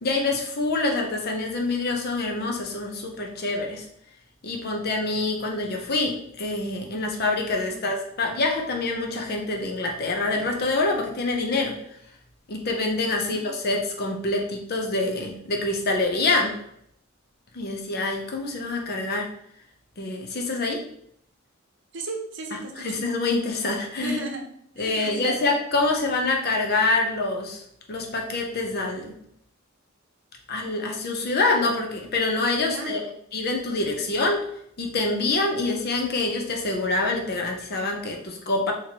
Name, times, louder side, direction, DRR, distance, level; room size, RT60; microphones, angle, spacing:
voice 1, 0.0-3.8 4.4-11.7 12.5-16.5 17.5-19.3 20.0-20.8 22.8-24.2 24.8-27.6 27.9-29.1 30.5-33.0 33.3-34.4 34.8-38.7, left 2 dB, 50° left, 1 dB, 0.7 m, -26 dB
voice 2, 13.1-13.5 21.9-22.9 24.0-25.4 32.7-33.2, right 3 dB, 65° right, 2 dB, 0.7 m, -35 dB
4.1 x 2.9 x 2.9 m, 0.69 s
head